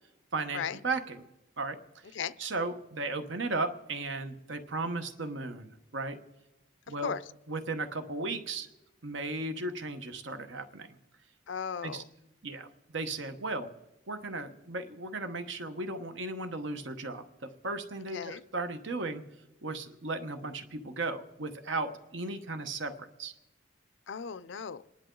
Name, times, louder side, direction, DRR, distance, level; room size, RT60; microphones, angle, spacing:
voice 1, 0.3-1.2 1.6-1.8 2.4-6.2 6.9-7.1 7.5-8.7 9.0-11.0 11.8-12.0 12.4-12.7 12.9-13.7 14.1-19.2 19.6-22.9 23.2-23.3, right 3 dB, 70° right, 1.1 m, -35 dB
voice 2, 11.5-12.1 18.1-18.4 24.1-24.8, left 7 dB, 70° left, 0.5 m, -36 dB
27.5 x 10.5 x 3.8 m
head